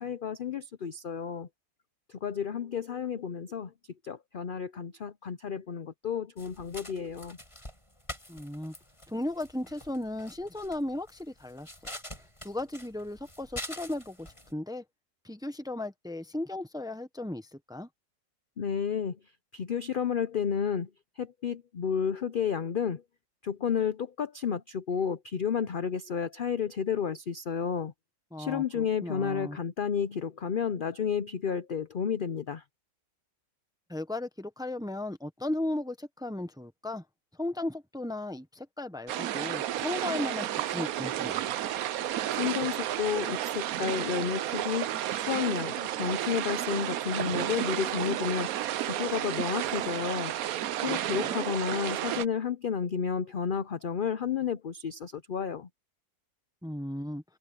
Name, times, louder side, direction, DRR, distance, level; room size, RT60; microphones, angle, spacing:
voice 1, 0.0-1.5 2.1-3.7 4.0-7.4 18.6-19.2 19.5-20.9 21.2-23.0 23.4-27.9 28.4-32.6 42.3-44.9 45.2-50.3 50.8-55.7, left 7 dB, 50° left, 0.6 m, -31 dB
sound 1, 6.4-14.5, left 1 dB, 20° left, 6.7 m, -45 dB
voice 2, 8.3-8.7 9.1-11.7 12.4-14.8 15.2-17.9 28.3-29.6 33.9-37.0 37.4-41.4 50.8-51.5 56.6-57.2, left 1 dB, 5° right, 0.8 m, -36 dB
sound 2, 39.1-52.3, right 12 dB, 75° right, 1.1 m, -32 dB
omnidirectional pair, 1.6 m